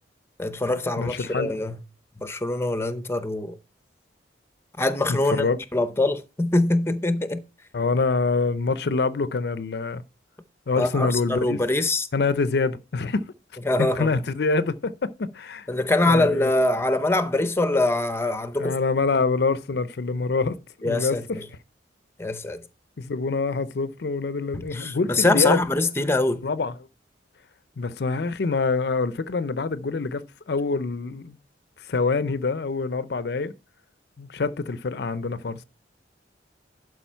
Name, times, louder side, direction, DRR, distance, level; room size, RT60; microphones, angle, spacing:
voice 1, 0.4-1.7 2.2-3.6 4.8-5.4 5.7-7.4 10.8-12.1 13.7-14.1 15.7-18.7 20.8-21.5 22.2-22.6 24.5-26.4, left 2 dB, 15° left, 0.6 m, -23 dB
voice 2, 1.0-1.6 5.1-5.6 7.7-10.0 10.7-11.6 12.1-13.2 13.8-15.7 16.0-16.5 18.6-20.6 20.8-21.4 23.0-25.6 26.4-26.8 27.8-31.4 31.9-33.5 34.2-35.6, left 4 dB, 60° left, 0.5 m, -25 dB
11.5 x 4.8 x 4.5 m
head